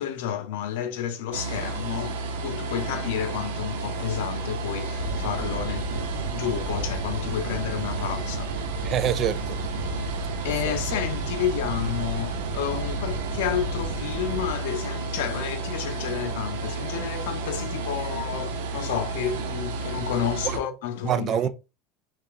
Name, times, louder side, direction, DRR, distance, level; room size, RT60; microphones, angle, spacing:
voice 1, 0.0-8.5 10.2-21.5, left 9 dB, 85° left, 0.6 m, -31 dB
sound 1, 1.3-20.6, right 3 dB, 90° right, 0.6 m, -32 dB
sound 2, 5.0-14.5, right 2 dB, 65° right, 1.1 m, -35 dB
voice 2, 8.8-9.6 10.6-10.8 20.4-20.6 21.0-21.5, right 10 dB, 45° right, 0.3 m, -26 dB
3.1 x 2.4 x 3.8 m
supercardioid pair, 105°, 0 cm